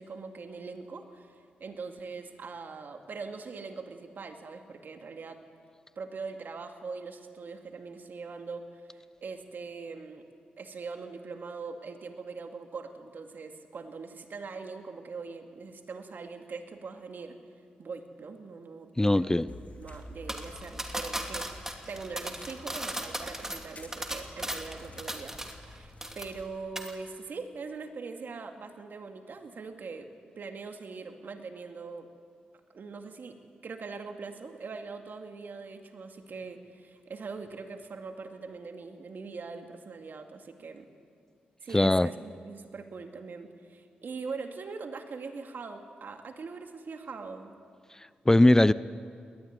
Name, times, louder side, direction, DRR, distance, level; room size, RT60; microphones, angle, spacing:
voice 1, 0.0-5.4 6.0-10.2 10.6-17.4 17.8-19.4 19.8-32.1 32.7-33.4 33.6-40.9 41.6-47.6, right 4 dB, 60° right, 5 dB, 2.2 m, -42 dB
voice 2, 19.0-19.5 41.7-42.1 48.3-48.7, left 1 dB, 15° left, 17 dB, 0.6 m, -20 dB
sound 1, 19.5-26.5, left 1 dB, 45° left, 3.3 m, -49 dB
sound 2, 20.3-25.7 26.0-26.5 26.8-26.9, right 1 dB, 15° right, 3.0 m, -37 dB
20.0 x 19.5 x 9.5 m, 2.2 s
supercardioid pair, 45°, 4 cm